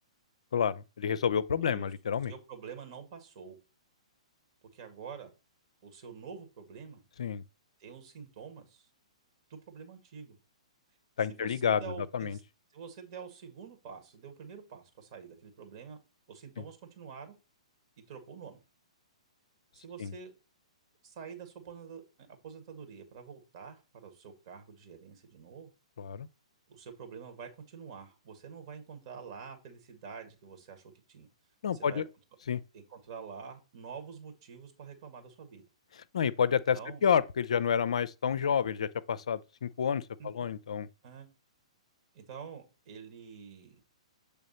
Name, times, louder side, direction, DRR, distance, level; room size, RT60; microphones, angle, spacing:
voice 1, 0.5-2.3 7.2-7.4 11.2-11.8 12.1-12.4 20.0-20.1 26.0-26.3 31.6-32.0 32.5-32.6 36.1-40.9, left 7 dB, 65° left, 0.4 m, -29 dB
voice 2, 2.3-3.6 4.7-5.3 5.8-7.0 7.8-8.9 9.5-10.4 11.3-12.4 12.7-16.0 16.3-17.4 18.0-18.6 19.7-20.3 21.0-25.7 26.7-31.3 31.7-32.0 32.7-35.6 36.7-37.0 40.2-40.5 41.0-41.3 42.1-43.8, right 6 dB, 45° right, 1.9 m, -47 dB
7.3 x 3.4 x 4.2 m
figure-of-eight pair, 115°, 4 cm